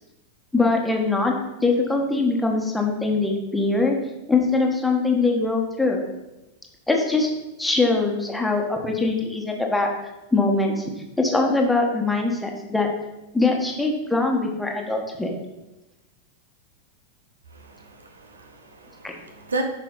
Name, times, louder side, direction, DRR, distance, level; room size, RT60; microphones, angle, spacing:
voice 1, 0.5-1.3 1.6-4.0 4.3-6.0 6.9-7.3 7.6-9.9 10.3-10.8 11.2-12.9 13.3-15.3 19.0-19.1, left 3 dB, 5° left, 1 dB, 1.5 m, -22 dB
voice 2, 17.5-19.6, right 2 dB, 75° right, 5 dB, 1.0 m, -34 dB
10.5 x 5.7 x 4.0 m, 0.99 s
figure-of-eight pair, 90°, 0 cm